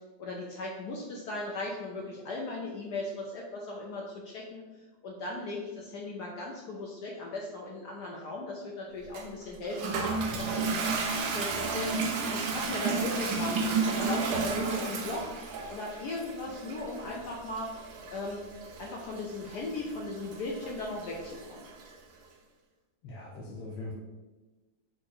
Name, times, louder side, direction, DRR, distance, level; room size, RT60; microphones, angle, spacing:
voice 1, 0.2-4.6 5.0-12.0 12.3-15.2 15.7-17.7 18.1-18.4 18.8-21.7, left 2 dB, 70° left, -2 dB, 1.0 m, -37 dB
Toilet flush, 9.1-21.9, right 4 dB, 70° right, 1.1 m, -33 dB
voice 2, 23.0-23.9, left 2 dB, 90° left, -4 dB, 1.5 m, -41 dB
4.7 x 2.4 x 4.2 m, 1.2 s
omnidirectional pair, 2.1 m